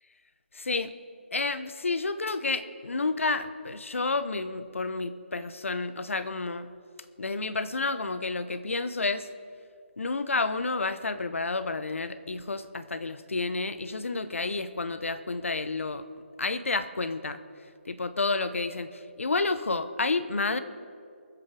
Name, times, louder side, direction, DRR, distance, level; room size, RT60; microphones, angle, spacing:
voice 1, 0.5-0.9 1.3-6.7 7.2-9.3 10.0-16.0 16.4-17.4 17.9-20.6, left 3 dB, 80° left, 12 dB, 0.9 m, -30 dB
23.0 x 7.7 x 4.8 m, 2.4 s
hypercardioid pair, 180°, 7 cm